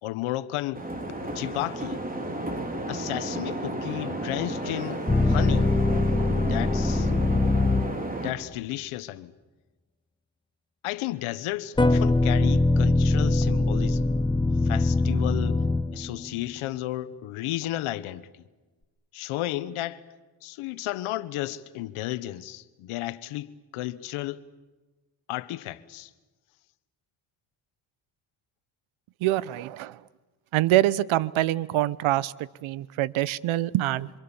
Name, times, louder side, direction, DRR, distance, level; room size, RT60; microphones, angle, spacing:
voice 1, 0.0-0.9 1.3-2.0 2.9-5.7 6.4-7.1 8.2-9.3 10.8-14.1 14.6-15.6 15.9-18.4 19.1-20.0 20.4-24.4 25.3-26.1, left 15 dB, 85° left, 1.3 m, -33 dB
sound 1, 0.7-8.3, right 1 dB, 15° right, 4.2 m, -32 dB
sound 2, 5.1-8.2 11.8-16.3, left 2 dB, 10° left, 1.0 m, -23 dB
voice 2, 29.2-30.0 30.5-34.1, right 15 dB, 75° right, 1.0 m, -25 dB
27.0 x 26.5 x 7.2 m
cardioid pair, 90°, 48 cm